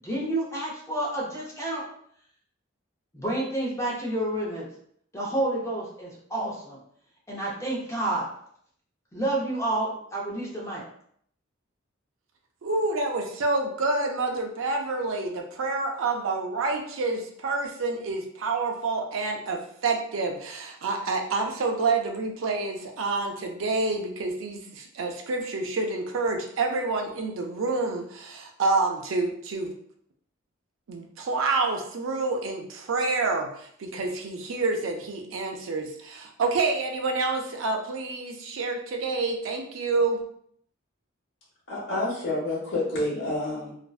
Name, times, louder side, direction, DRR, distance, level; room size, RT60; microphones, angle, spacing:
voice 1, 0.0-1.9 3.1-4.7 5.1-6.8 7.3-8.3 9.1-10.8, right 1 dB, 15° left, -4 dB, 0.6 m, -29 dB
voice 2, 12.6-29.7 30.9-40.2, right 3 dB, 80° right, 3 dB, 0.4 m, -28 dB
voice 3, 41.7-43.7, left 2 dB, 55° left, -7 dB, 0.9 m, -28 dB
2.5 x 2.1 x 2.3 m, 0.65 s
head